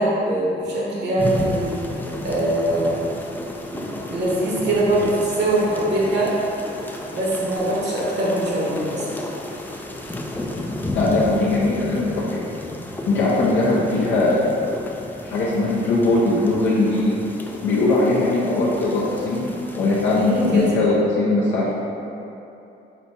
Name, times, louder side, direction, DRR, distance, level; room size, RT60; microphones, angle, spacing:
voice 1, 0.0-1.7 2.2-3.1 3.7-6.4 7.1-9.1 20.1-20.7, right 1 dB, 60° right, -5 dB, 1.1 m, -22 dB
sound 1, 1.2-20.7, left 1 dB, 10° left, 0.3 m, -33 dB
voice 2, 10.9-12.4 13.1-14.5 15.2-17.2 17.6-19.5 19.7-21.7, left 2 dB, 70° left, -7 dB, 0.7 m, -20 dB
4.1 x 2.3 x 4.1 m, 2.8 s
cardioid pair, 90°, 20 cm